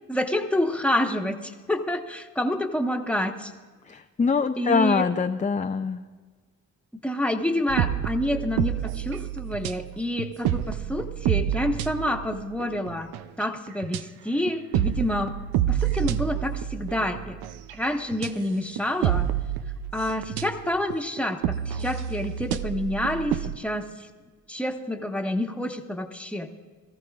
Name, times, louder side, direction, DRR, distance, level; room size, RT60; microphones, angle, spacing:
voice 1, 0.1-3.5 4.6-5.0 7.0-13.1 13.4-15.3 15.7-17.4 17.7-19.3 19.9-24.1 24.5-26.6, left 1 dB, 5° left, 4 dB, 1.3 m, -28 dB
voice 2, 3.9-6.0, left 5 dB, 20° left, 6 dB, 0.5 m, -24 dB
sound 1, 7.7-13.4 13.8-14.0 14.5-18.3 18.8-23.6, right 11 dB, 90° right, 0.5 m, -28 dB
22.0 x 14.0 x 2.4 m, 1.4 s
supercardioid pair, 55°, 36 cm